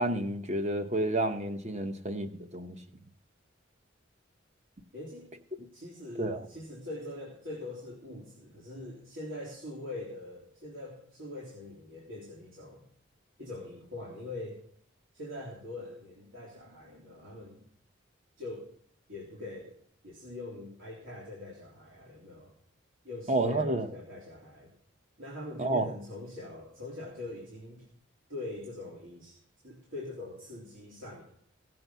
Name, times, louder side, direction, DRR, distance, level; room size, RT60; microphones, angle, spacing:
voice 1, 0.0-2.8 6.2-6.5 23.3-23.9 25.6-25.9, right 2 dB, 35° right, 8 dB, 1.0 m, -30 dB
voice 2, 4.9-5.3 5.7-12.9 13.4-14.6 15.1-17.6 18.4-18.7 19.1-19.7 20.0-22.5 23.0-24.7 25.2-27.9 28.3-29.4 29.6-31.2, left 2 dB, 80° right, -4 dB, 3.5 m, -43 dB
17.0 x 7.8 x 5.6 m, 0.64 s
head